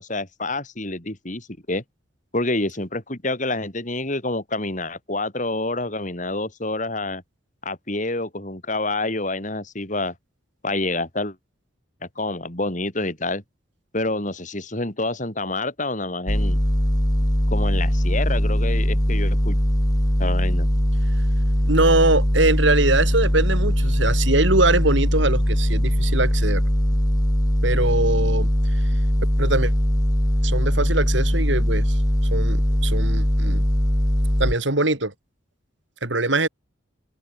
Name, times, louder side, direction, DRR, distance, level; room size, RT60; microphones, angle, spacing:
voice 1, 0.0-1.8 2.3-7.2 7.6-10.1 10.6-11.4 12.2-13.4 13.9-16.6 17.5-19.6 20.2-20.7, left 2 dB, 40° left, 4.0 m, -27 dB
sound 1, 16.3-34.5, equal, 20° left, 2.1 m, -20 dB
voice 2, 21.7-26.6 27.6-28.5 29.4-29.7 30.4-32.0 32.3-33.6 34.4-35.1 36.0-36.5, right 2 dB, 70° right, 3.3 m, -22 dB
open air
head